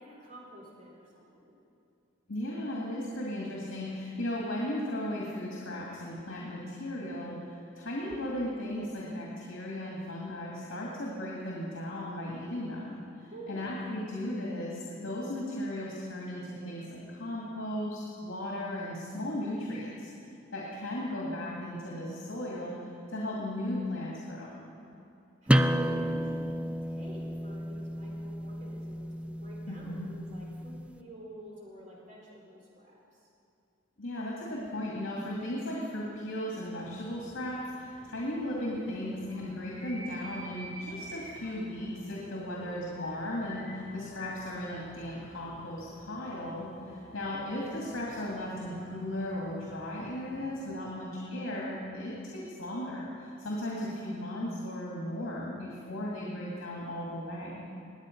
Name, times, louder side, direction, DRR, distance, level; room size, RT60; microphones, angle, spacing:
voice 1, 0.0-1.6 13.3-13.8 25.4-33.3 42.5-42.7 47.1-47.2 52.1-52.5, equal, 35° right, -4 dB, 3.6 m, -48 dB
voice 2, 2.3-20.1 20.5-24.6 29.7-30.1 34.0-57.7, left 1 dB, 75° left, -4 dB, 2.3 m, -36 dB
sound 1, 25.5-30.9, equal, 5° right, 0.3 m, -31 dB
sound 2, 36.8-50.7, left 1 dB, 50° left, 3.6 m, -49 dB
20.0 x 8.7 x 5.3 m, 2.7 s
head